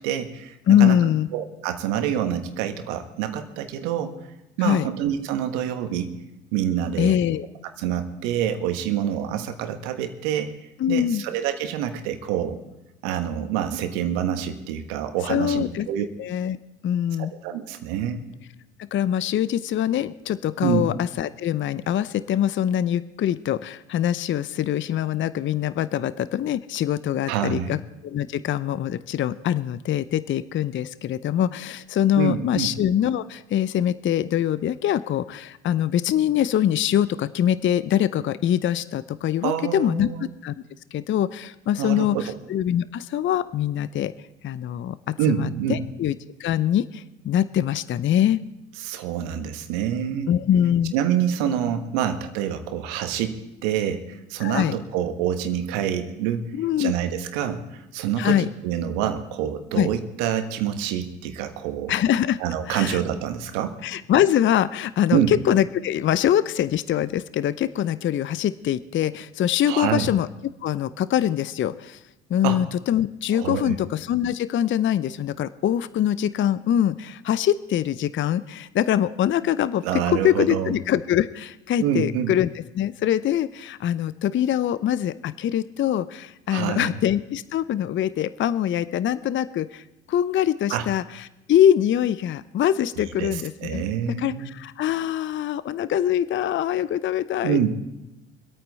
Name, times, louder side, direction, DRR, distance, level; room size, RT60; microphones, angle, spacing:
voice 1, 0.0-1.0 1.3-4.1 4.6-6.1 6.5-7.2 7.8-10.5 10.9-12.6 13.0-16.1 17.4-18.2 20.6-20.9 27.3-27.7 32.2-32.7 39.4-40.2 41.8-42.2 45.2-45.8 48.8-50.3 50.9-53.4 53.6-56.5 56.8-61.9 62.4-63.8 65.1-65.3 69.7-70.1 72.4-72.6 73.3-73.8 79.8-80.7 81.8-82.3 86.5-86.9 90.7-90.9 93.2-94.5 97.4-97.7, right 9 dB, 70° right, 7 dB, 1.5 m, -26 dB
voice 2, 0.7-1.3 4.6-4.9 7.0-7.5 10.8-11.2 15.3-16.6 16.8-17.3 18.9-40.5 40.9-44.1 44.4-48.4 50.3-50.9 54.4-54.7 56.5-56.9 58.2-58.5 59.7-59.9 61.9-62.4 62.7-63.0 63.8-70.3 70.6-72.0 72.3-82.5 82.7-93.8 94.2-97.7, left 10 dB, 35° left, 15 dB, 0.6 m, -23 dB
24.5 x 8.8 x 4.1 m, 0.95 s
hypercardioid pair, 65°, 33 cm